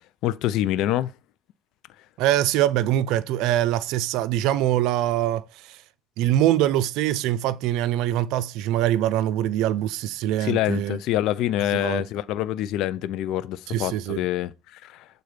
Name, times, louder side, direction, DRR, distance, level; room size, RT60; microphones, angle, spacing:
voice 1, 0.2-1.1 10.4-15.2, left 13 dB, 80° left, 0.6 m, -26 dB
voice 2, 2.2-5.8 6.2-11.0 11.7-12.0 13.7-14.2, right 13 dB, 85° right, 0.5 m, -23 dB
8.1 x 4.1 x 5.1 m
cardioid pair, 95°, 0 cm